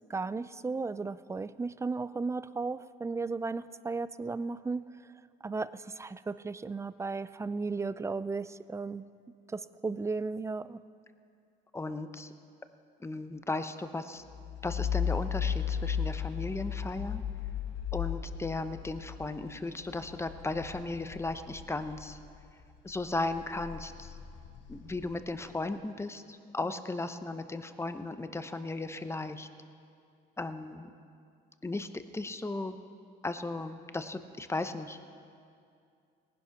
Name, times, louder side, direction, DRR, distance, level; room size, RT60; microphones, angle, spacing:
voice 1, 0.1-4.9 5.4-9.0 9.5-10.8, right 4 dB, 15° right, 16 dB, 0.4 m, -35 dB
voice 2, 11.7-12.3 13.0-14.2 14.6-17.2 17.9-22.2 22.8-24.2 24.7-29.5 30.4-30.9 31.6-32.8 33.2-35.1, left 2 dB, 15° left, 10 dB, 0.8 m, -36 dB
sound 1, 14.3-22.5 22.9-25.5, left 7 dB, 70° left, 1.1 m, -36 dB
18.5 x 11.0 x 5.8 m, 2.4 s
cardioid pair, 95°, 20 cm